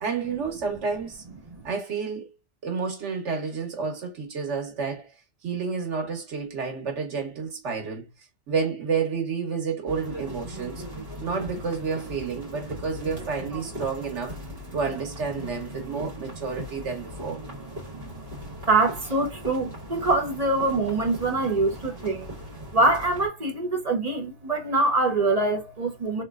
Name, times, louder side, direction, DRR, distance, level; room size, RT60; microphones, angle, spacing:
voice 1, 0.0-1.2 1.6-2.3 2.6-5.1 5.4-8.1 8.5-10.9 11.2-14.4 14.7-17.4, right 5 dB, 85° right, 1.5 m, -30 dB
sound 1, 9.9-23.3, equal, 55° right, 1.8 m, -39 dB
voice 2, 18.7-22.3 22.7-26.2, right 2 dB, 40° right, 0.8 m, -24 dB
3.1 x 3.0 x 2.3 m
omnidirectional pair, 1.2 m